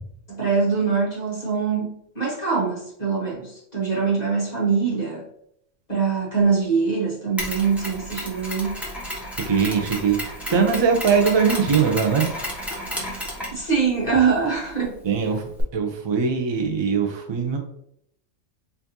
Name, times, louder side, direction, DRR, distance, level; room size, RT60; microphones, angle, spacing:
voice 1, 0.3-5.2 5.9-8.8 13.5-15.0, right 5 dB, 35° left, -5 dB, 1.2 m, -23 dB
Mechanisms, 7.4-15.6, equal, ahead, 0.9 m, -33 dB
voice 2, 9.5-12.2 15.0-15.4 15.7-17.6, right 6 dB, 40° right, 3 dB, 0.3 m, -21 dB
4.7 x 2.6 x 2.7 m, 0.72 s
omnidirectional pair, 1.4 m